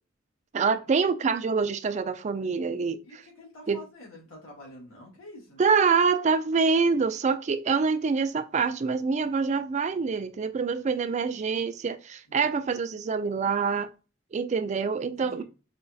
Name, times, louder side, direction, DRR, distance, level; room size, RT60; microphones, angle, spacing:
voice 1, 0.5-3.2 3.7-3.8 5.6-13.9 14.3-15.4, right 5 dB, 35° right, 0.3 m, -26 dB
voice 2, 3.0-5.6 12.3-12.4 15.2-15.4, left 1 dB, 80° left, 1.6 m, -47 dB
5.0 x 2.3 x 2.6 m
head